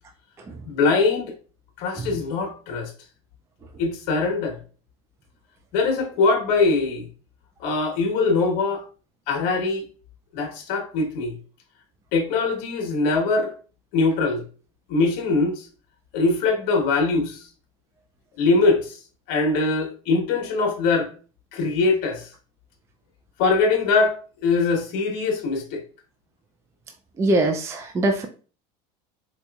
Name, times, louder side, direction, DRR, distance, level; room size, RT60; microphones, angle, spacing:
voice 1, 0.6-1.3 1.8-2.9 3.8-4.6 5.7-7.1 7.6-8.8 9.3-9.8 10.3-11.3 12.1-13.5 13.9-14.4 14.9-15.7 16.1-17.5 18.4-19.0 19.3-21.1 21.5-22.3 23.4-25.8, left 3 dB, 65° left, 1.2 m, -22 dB
voice 2, 27.2-28.3, right 1 dB, 15° right, 0.4 m, -22 dB
4.0 x 2.8 x 2.3 m
supercardioid pair, 130°, 17 cm